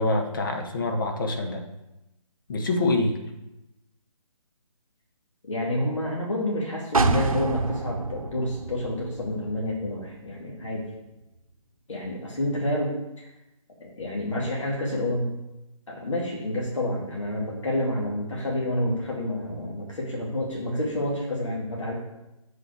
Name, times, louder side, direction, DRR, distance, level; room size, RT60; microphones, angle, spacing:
voice 1, 0.0-1.6 2.5-3.2, left 2 dB, 35° left, 3 dB, 1.0 m, -25 dB
voice 2, 5.5-10.9 11.9-13.3 13.8-15.3 15.9-21.9, left 1 dB, 60° left, -2 dB, 2.0 m, -29 dB
sound 1, 6.9-10.7 11.1-11.2, right 3 dB, 75° right, 0.9 m, -28 dB
6.3 x 5.4 x 4.7 m, 0.95 s
figure-of-eight pair, 150°, 18 cm